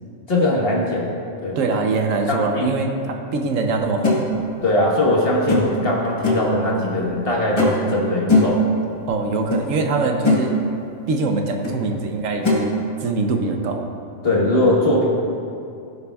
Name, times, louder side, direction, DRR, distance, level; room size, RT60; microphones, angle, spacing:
voice 1, 0.3-1.6 2.3-2.7 4.6-8.6 14.2-15.1, left 1 dB, 45° left, -3 dB, 1.5 m, -20 dB
voice 2, 1.6-4.3 9.1-10.6 11.1-13.8, right 3 dB, 70° right, 4 dB, 1.1 m, -23 dB
sound 1, 4.0-4.2 5.5-5.8 6.2-6.5 7.6-7.9 8.3-8.6 9.5-9.6 10.0-10.4 11.6-11.8 12.4-12.6, left 2 dB, 25° left, 1.1 m, -19 dB
15.0 x 6.8 x 2.3 m, 2.5 s
omnidirectional pair, 1.4 m